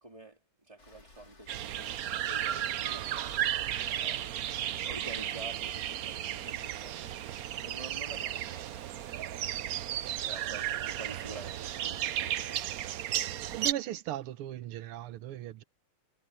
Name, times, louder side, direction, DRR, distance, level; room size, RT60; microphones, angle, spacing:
voice 1, 0.0-4.3 4.8-7.0 7.6-9.0 10.2-12.7, right 2 dB, 15° right, 3.6 m, -48 dB
Rain, 0.8-9.1, left 3 dB, 55° left, 5.0 m, -59 dB
sound 1, 1.5-13.7, right 11 dB, 75° right, 0.8 m, -34 dB
voice 2, 13.5-15.6, right 12 dB, 90° right, 1.8 m, -37 dB
omnidirectional pair, 2.3 m